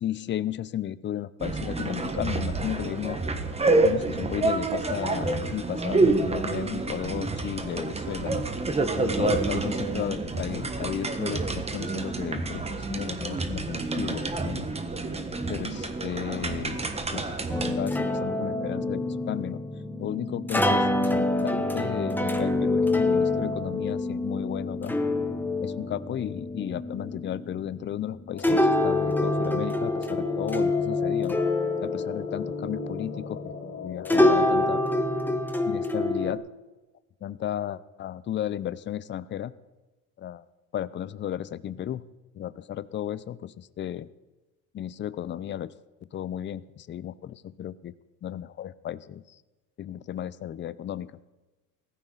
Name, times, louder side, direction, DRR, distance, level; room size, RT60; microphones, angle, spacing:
voice 1, 0.0-3.2 3.8-8.4 8.9-14.7 15.5-16.8 17.1-17.4 17.8-19.6 20.0-24.9 25.6-31.4 31.8-33.5 33.8-34.8 35.6-36.4 37.2-39.5 40.2-40.4 40.7-42.0 42.4-44.1 44.7-45.7 46.1-47.9 48.2-49.2 49.8-51.1, left 11 dB, 35° left, 17 dB, 0.6 m, -34 dB
sound 1, 1.4-17.7, right 3 dB, 20° right, 1.4 m, -28 dB
sound 2, 17.5-33.7 34.1-36.3, left 2 dB, 5° left, 1.1 m, -26 dB
sound 3, 28.3-34.8, left 5 dB, 50° left, 3.7 m, -39 dB
16.5 x 14.5 x 4.0 m, 1.1 s
supercardioid pair, 105°, 34 cm